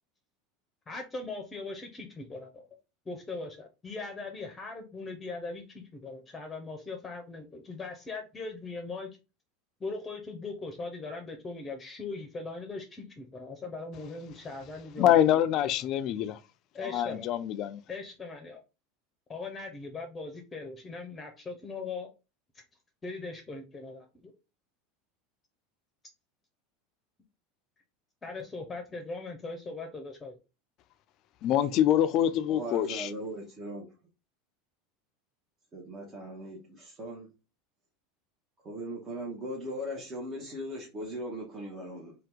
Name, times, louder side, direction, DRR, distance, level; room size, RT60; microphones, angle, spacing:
voice 1, 0.9-2.6 3.1-9.1 9.8-15.5 16.7-17.3 17.9-18.6 19.3-22.1 22.5-22.6 23.0-24.3 28.2-30.4, left 3 dB, 20° left, 0.7 m, -40 dB
voice 2, 15.0-16.4 16.8-17.8 31.4-33.1, left 11 dB, 50° left, 0.3 m, -25 dB
voice 3, 32.5-33.9 35.7-37.3 38.6-42.1, equal, 35° right, 0.9 m, -39 dB
2.8 x 2.3 x 3.5 m
hypercardioid pair, 100°, 0 cm